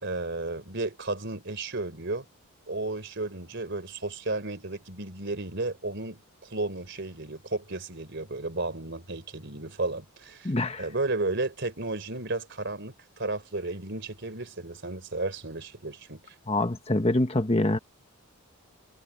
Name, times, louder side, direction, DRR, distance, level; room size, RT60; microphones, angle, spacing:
voice 1, 0.0-2.3 2.7-16.2, right 2 dB, 50° right, 3.6 m, -33 dB
voice 2, 10.4-10.8 16.5-17.8, left 1 dB, 25° left, 1.1 m, -25 dB
head